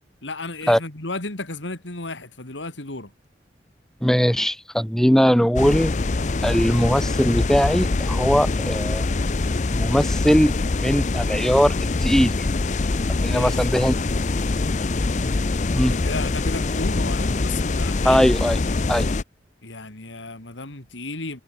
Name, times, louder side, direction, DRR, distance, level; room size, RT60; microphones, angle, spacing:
voice 1, 0.2-3.1 13.1-13.7 15.8-18.3 19.6-21.4, left 2 dB, 90° left, 3.1 m, -33 dB
voice 2, 4.0-5.9 6.4-9.1 9.7-10.5 10.8-12.5 13.2-13.9 15.7-15.9 18.0-18.6 18.9-19.1, equal, 5° left, 0.9 m, -20 dB
sound 1, 5.6-19.2, left 3 dB, 40° left, 0.5 m, -24 dB
head